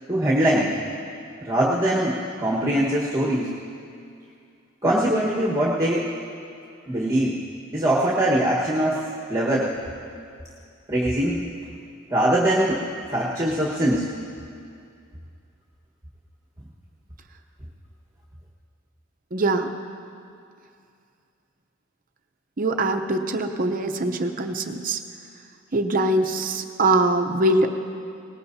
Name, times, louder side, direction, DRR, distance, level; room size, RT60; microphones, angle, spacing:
voice 1, 0.1-0.8 1.4-3.5 4.8-6.1 6.9-7.4 7.7-9.7 10.9-11.4 12.1-12.8 13.1-14.1, right 1 dB, 15° right, -5 dB, 1.4 m, -22 dB
voice 2, 19.3-19.7 22.6-25.0 25.7-27.7, right 2 dB, 40° right, 6 dB, 0.7 m, -22 dB
21.0 x 19.0 x 2.8 m, 2.4 s
head